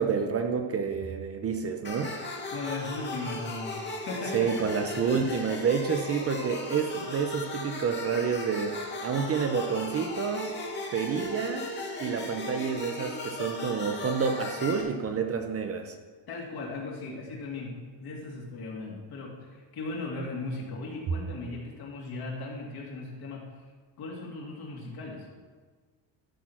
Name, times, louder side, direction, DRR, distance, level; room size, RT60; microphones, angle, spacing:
voice 1, 0.0-2.2 4.3-10.5 10.9-11.6 12.0-16.0, right 6 dB, 30° right, 6 dB, 0.6 m, -29 dB
sound 1, 1.8-14.8, left 2 dB, 20° left, 1.8 m, -37 dB
voice 2, 2.5-5.0 16.3-23.4 24.0-25.3, left 3 dB, 50° left, -3 dB, 2.7 m, -37 dB
12.5 x 6.6 x 6.0 m, 1.5 s
cardioid pair, 175°, 48 cm